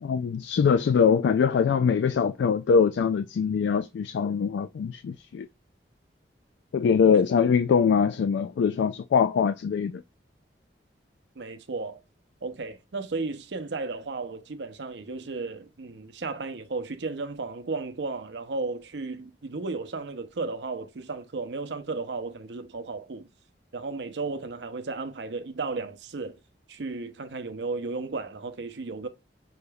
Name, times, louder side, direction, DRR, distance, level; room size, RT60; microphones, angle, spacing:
voice 1, 0.0-5.5 6.7-10.0, left 6 dB, 85° left, 0.3 m, -23 dB
voice 2, 11.4-12.0 12.4-23.3 23.7-26.4 26.7-29.1, right 3 dB, 80° right, 0.6 m, -34 dB
5.5 x 3.3 x 2.2 m
head